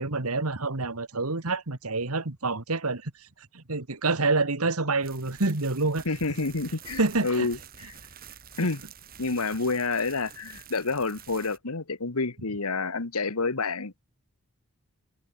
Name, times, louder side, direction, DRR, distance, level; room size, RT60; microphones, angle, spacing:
voice 1, 0.0-3.1 3.5-6.0 7.0-7.5, right 3 dB, 85° right, 1.9 m, -27 dB
sound 1, 5.0-11.6, right 7 dB, 40° right, 6.0 m, -48 dB
voice 2, 6.0-7.9 8.6-8.8 9.2-13.9, left 3 dB, 90° left, 1.6 m, -29 dB
head